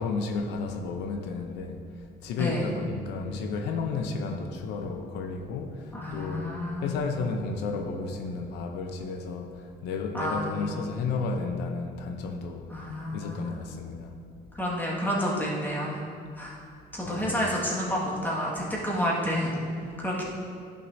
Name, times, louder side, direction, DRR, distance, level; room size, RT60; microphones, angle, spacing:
voice 1, 0.0-14.2 17.0-17.5, left 4 dB, 85° left, 0.7 m, -33 dB
voice 2, 2.4-2.7 5.9-6.9 10.1-10.7 12.7-13.5 14.5-16.0 16.4-16.6 16.9-20.2, equal, 10° left, 1.8 m, -30 dB
11.0 x 6.1 x 2.7 m
cardioid pair, 110°, 17 cm